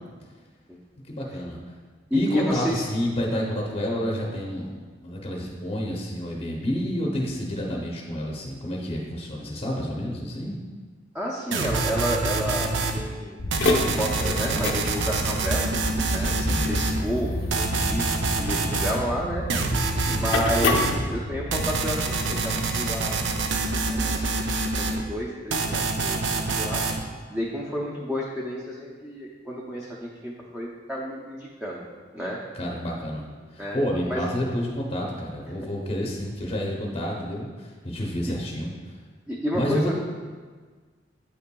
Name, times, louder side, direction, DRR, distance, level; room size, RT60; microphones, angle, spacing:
voice 1, 1.1-1.6 2.1-10.6 16.4-16.8 19.9-20.3 20.8-21.0 32.5-38.7 39.5-39.9, equal, 30° left, -2 dB, 0.7 m, -29 dB
voice 2, 2.1-2.8 11.1-13.4 13.8-15.7 16.1-16.3 16.6-19.4 20.1-23.2 23.6-24.3 24.8-26.2 26.6-26.8 27.3-31.9 32.1-32.4 33.6-33.8 34.0-34.2 35.6-35.7 39.3-39.9, equal, 5° right, -5 dB, 0.5 m, -31 dB
sound 1, 11.5-13.0 13.5-17.0 17.5-19.0 19.5-21.0 21.5-25.0 25.5-27.0, right 3 dB, 80° right, 0.5 m, -26 dB
sound 2, 13.4-21.7, left 2 dB, 80° left, 0.7 m, -28 dB
8.4 x 5.6 x 2.3 m, 1.5 s
head